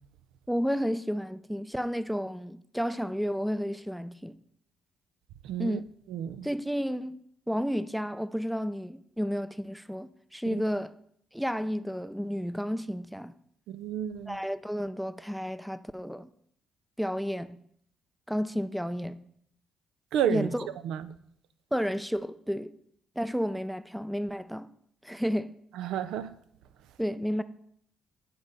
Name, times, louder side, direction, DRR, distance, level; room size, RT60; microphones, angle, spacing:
voice 1, 0.5-4.4 5.6-5.8 6.4-7.2 7.5-10.9 11.3-13.3 14.3-16.3 17.0-17.6 18.3-19.3 20.3-20.7 21.7-22.7 23.2-24.7 25.0-25.5 27.0-27.4, equal, ahead, 0.4 m, -31 dB
voice 2, 5.4-5.8 6.1-6.5 13.7-14.4 20.1-20.5 20.8-21.1 25.8-26.3, right 10 dB, 90° right, 0.4 m, -30 dB
9.4 x 3.9 x 5.3 m
cardioid pair, 90°, 0 cm